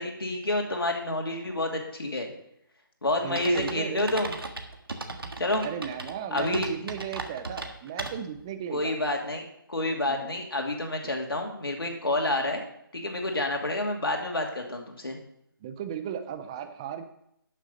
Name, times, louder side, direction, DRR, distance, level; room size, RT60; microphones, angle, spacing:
voice 1, 0.0-2.3 3.0-4.3 5.4-5.6 6.3-6.7 8.7-9.4 9.7-12.6 12.9-15.2, left 2 dB, 80° left, 2 dB, 2.6 m, -29 dB
voice 2, 3.2-4.0 5.6-9.0 10.1-10.3 15.6-17.0, right 8 dB, 15° right, 9 dB, 0.4 m, -35 dB
sound 1, 3.4-8.4, right 2 dB, 80° right, 1.5 m, -37 dB
11.5 x 6.7 x 5.3 m, 0.75 s
figure-of-eight pair, 160°, 12 cm